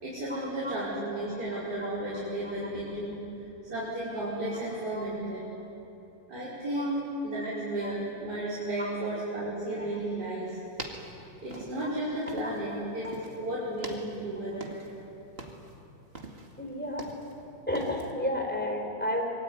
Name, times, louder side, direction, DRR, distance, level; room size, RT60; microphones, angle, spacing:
voice 1, 0.0-3.2 3.6-5.5 6.3-7.0 7.2-10.6 11.4-13.1 13.4-14.7, right 1 dB, 55° right, -9 dB, 6.0 m, -33 dB
sound 1, 10.5-12.8 13.0-13.4 13.7-15.0 15.3-15.8 16.1-17.4 17.7-18.1, right 2 dB, 30° right, 2.4 m, -43 dB
voice 2, 16.6-17.0 17.7-19.2, left 1 dB, 5° left, 1 dB, 4.2 m, -31 dB
25.5 x 22.0 x 9.7 m, 3.0 s
omnidirectional pair, 2.1 m